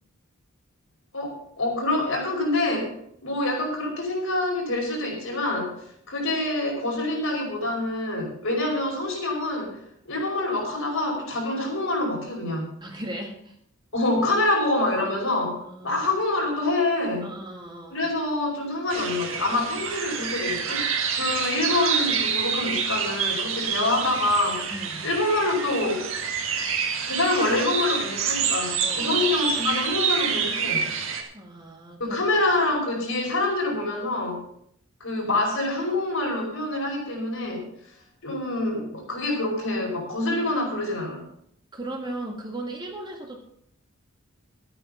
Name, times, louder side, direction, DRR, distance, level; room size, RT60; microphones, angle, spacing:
voice 1, 1.1-2.9 3.2-5.7 6.1-9.8 10.0-12.7 13.9-17.3 17.9-20.8 21.1-24.7 25.0-26.1 27.1-30.8 32.0-34.4 35.0-37.7 38.2-41.2, left 2 dB, 70° left, -1 dB, 5.1 m, -26 dB
voice 2, 12.8-13.6 15.6-16.0 17.2-18.1 24.7-25.0 28.8-29.1 31.3-32.2 41.7-43.4, right 1 dB, 20° right, 1 dB, 2.0 m, -37 dB
sound 1, 18.9-31.2, right 6 dB, 65° right, 1.9 m, -27 dB
13.0 x 9.0 x 5.6 m, 0.68 s
head